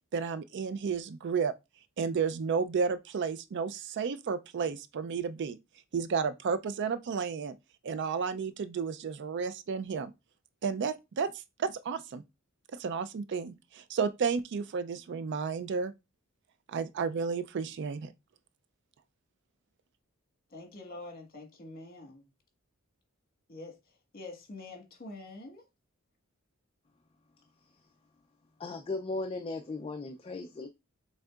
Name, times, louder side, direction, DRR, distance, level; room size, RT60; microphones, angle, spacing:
voice 1, 0.1-1.5 2.0-5.6 5.9-7.6 7.8-10.1 10.6-12.2 12.7-15.9 16.7-18.1, right 5 dB, 55° right, 0.4 m, -32 dB
voice 2, 20.5-22.2 23.5-25.6, left 2 dB, 45° left, 1.4 m, -46 dB
voice 3, 28.6-30.7, left 3 dB, 25° left, 0.4 m, -36 dB
6.3 x 3.5 x 2.3 m
head